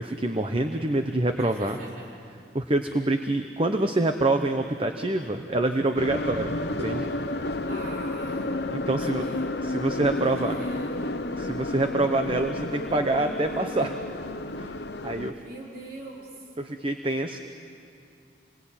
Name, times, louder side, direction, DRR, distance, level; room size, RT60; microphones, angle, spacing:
voice 1, 0.0-1.8 2.5-7.1 8.7-9.3 9.7-10.5 11.3-14.0 14.6-14.7 15.0-15.3 16.6-17.4, right 2 dB, 30° right, 6 dB, 0.9 m, -26 dB
voice 2, 1.3-2.2 3.8-4.0 7.7-9.5 10.1-11.1 15.3-16.5, right 2 dB, 55° right, -4 dB, 4.3 m, -43 dB
sound 1, 5.9-15.3, left 2 dB, 65° left, 0.9 m, -31 dB
sound 2, 6.8-11.2, right 1 dB, 75° right, 2.1 m, -46 dB
28.0 x 21.5 x 9.0 m, 2.5 s
head